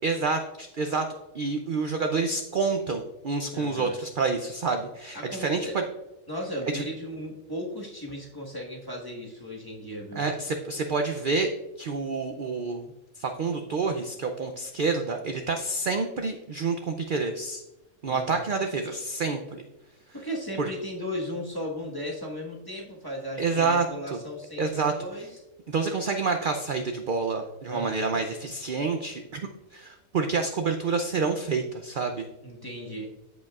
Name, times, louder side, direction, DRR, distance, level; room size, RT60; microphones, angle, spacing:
voice 1, 0.0-1.0 1.3-5.6 6.7-6.8 10.1-11.5 11.8-12.9 13.2-17.6 18.0-19.6 20.6-20.7 23.4-23.8 24.6-24.9 25.7-32.3, right 4 dB, 60° right, 5 dB, 0.5 m, -28 dB
voice 2, 3.5-4.0 5.1-5.7 6.3-10.2 18.0-18.4 20.1-25.3 27.7-28.2 32.4-33.1, equal, 15° left, -2 dB, 1.3 m, -36 dB
14.5 x 5.3 x 2.4 m, 0.97 s
omnidirectional pair, 1.5 m